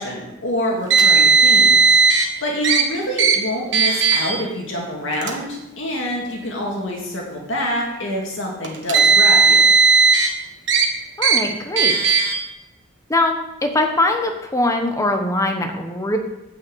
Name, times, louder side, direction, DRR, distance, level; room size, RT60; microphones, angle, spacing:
voice 1, 0.0-9.7, left 1 dB, 75° left, -1 dB, 2.1 m, -26 dB
Car, 0.9-2.2 2.6-2.8 3.2-3.4 3.7-4.3 5.1-5.3 6.3-6.4 8.6-10.3 10.7-10.9 11.2-11.4 11.8-12.3, right 4 dB, 65° right, 1.4 m, -15 dB
voice 2, 11.2-12.2 13.1-16.2, left 2 dB, 15° left, 4 dB, 1.1 m, -22 dB
9.3 x 5.4 x 8.0 m, 0.96 s
head